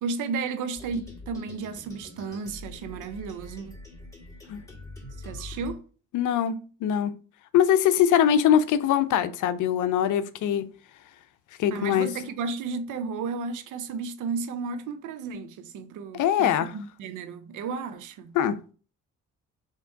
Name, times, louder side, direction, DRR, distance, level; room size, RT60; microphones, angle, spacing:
voice 1, 0.0-3.8 5.2-5.8 11.7-18.3, right 4 dB, 85° right, 0.6 m, -33 dB
sound 1, 0.8-5.7, left 2 dB, 10° left, 2.1 m, -44 dB
voice 2, 6.1-7.1 7.5-10.7 11.6-12.1 16.1-16.7 18.3-18.6, left 9 dB, 80° left, 0.6 m, -22 dB
3.5 x 3.0 x 4.5 m
cardioid pair, 90°, 30 cm